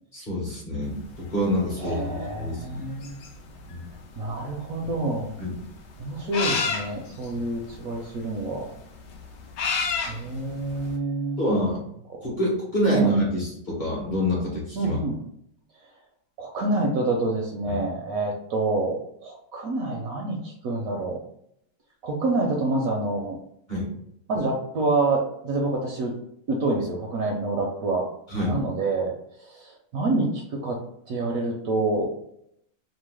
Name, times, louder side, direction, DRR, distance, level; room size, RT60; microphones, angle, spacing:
voice 1, 0.1-2.9 3.7-3.8 5.4-5.6 11.4-11.8 12.2-15.0 17.7-17.8 23.7-23.9 28.3-28.6, equal, 35° left, -6 dB, 0.9 m, -26 dB
sound 1, 0.9-11.0, left 5 dB, 70° left, 0.8 m, -32 dB
voice 2, 1.8-3.1 4.1-5.4 6.0-8.7 10.1-11.4 12.1-12.2 12.9-13.2 14.8-15.2 16.4-21.2 22.0-23.4 24.3-26.1 26.5-28.1 28.5-29.1 29.4-30.8 31.1-32.1, right 2 dB, 70° right, 1 dB, 0.9 m, -27 dB
3.0 x 2.1 x 3.2 m, 0.73 s
omnidirectional pair, 1.8 m